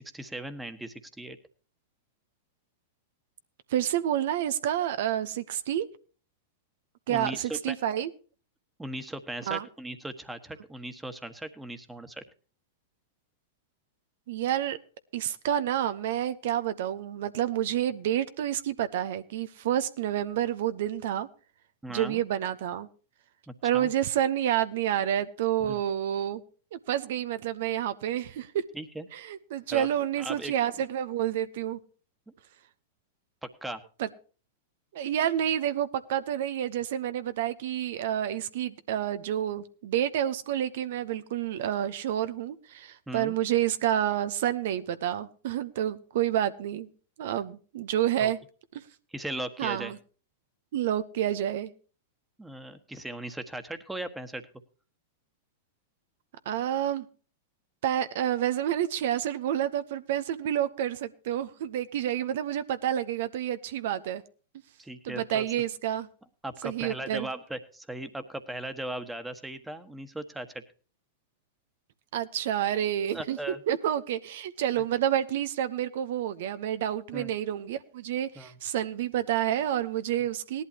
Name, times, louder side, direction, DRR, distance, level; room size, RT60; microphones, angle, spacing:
voice 1, 0.0-1.4 7.1-7.7 8.8-12.2 21.8-22.2 23.5-23.9 25.7-25.8 28.7-29.1 29.7-29.9 30.2-30.5 33.6-33.8 43.1-43.4 48.2-48.3 49.1-49.9 52.4-54.4 64.8-65.5 66.4-70.6 73.1-73.6 77.1-77.3 78.3-78.5, right 1 dB, 5° right, 10 dB, 1.4 m, -38 dB
voice 2, 3.7-5.9 7.1-8.1 9.5-9.7 14.3-14.8 15.1-21.3 21.9-22.9 23.6-26.4 26.7-28.6 29.1-31.8 34.0-34.1 34.9-46.9 47.2-48.4 49.6-50.0 50.7-51.7 56.4-57.1 57.8-64.2 65.0-66.1 66.6-67.3 72.1-73.4 73.7-80.6, right 11 dB, 60° right, 12 dB, 0.8 m, -29 dB
18.5 x 11.5 x 2.9 m, 0.38 s
hypercardioid pair, 100°, 0 cm